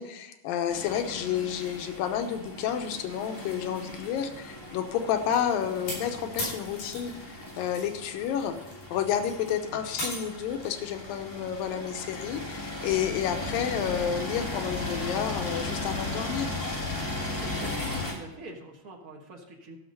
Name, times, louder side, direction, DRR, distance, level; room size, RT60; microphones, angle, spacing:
voice 1, 0.0-8.6 8.9-16.5, left 9 dB, 85° left, 7 dB, 2.6 m, -30 dB
sound 1, 0.7-18.1, left 1 dB, 10° left, 1.6 m, -37 dB
sound 2, 5.3-7.9 8.3-10.8, left 1 dB, 60° left, 6.4 m, -38 dB
sound 3, 12.9-18.0, left 5 dB, 35° left, 2.2 m, -39 dB
voice 2, 17.3-19.8, right 1 dB, 65° right, 0 dB, 0.8 m, -45 dB
14.5 x 6.4 x 5.3 m, 0.99 s
omnidirectional pair, 3.9 m